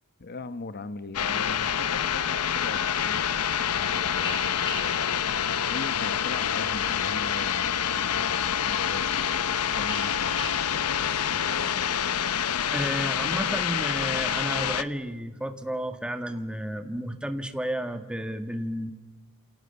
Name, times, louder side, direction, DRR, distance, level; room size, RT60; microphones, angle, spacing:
voice 1, 0.2-11.9, left 3 dB, 45° left, 1.0 m, -41 dB
sound 1, 1.1-14.8, left 8 dB, 90° left, 0.9 m, -27 dB
sound 2, 2.4-13.3, left 2 dB, 25° left, 6.2 m, -44 dB
voice 2, 12.7-18.9, equal, 5° right, 1.7 m, -32 dB
29.5 x 28.0 x 7.0 m
head